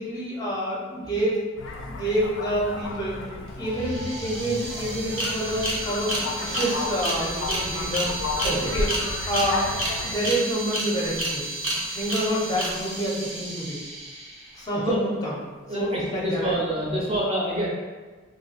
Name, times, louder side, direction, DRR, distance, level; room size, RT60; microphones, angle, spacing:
voice 1, 0.0-1.4 1.9-3.2 3.6-8.1 8.4-8.9 9.3-9.7 10.0-11.5 11.9-13.8 14.6-16.7, right 1 dB, 20° left, -5 dB, 0.5 m, -28 dB
sound 1, 1.6-10.2, left 3 dB, 70° left, 0.3 m, -33 dB
sound 2, 3.5-3.6 3.7-14.6, right 1 dB, 70° right, 0.8 m, -31 dB
voice 2, 15.7-17.7, right 1 dB, 30° right, -4 dB, 0.6 m, -27 dB
2.6 x 2.1 x 4.0 m, 1.3 s
head